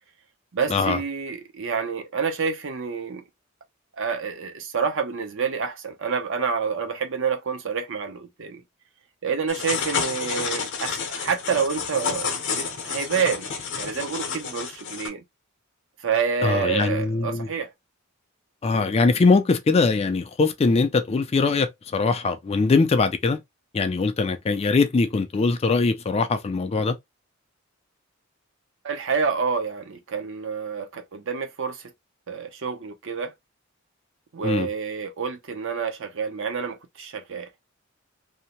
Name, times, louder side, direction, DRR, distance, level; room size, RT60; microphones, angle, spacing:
voice 1, 0.5-3.2 4.0-8.6 9.2-13.5 13.8-15.2 16.0-17.7 28.8-31.8 32.3-33.3 34.3-37.5, right 6 dB, 60° right, 0.6 m, -28 dB
sound 1, 9.5-15.1, left 6 dB, 55° left, 0.7 m, -30 dB
voice 2, 16.4-17.5 18.6-23.4 23.7-27.0 34.4-34.7, left 4 dB, 30° left, 0.3 m, -22 dB
2.7 x 2.1 x 2.8 m
head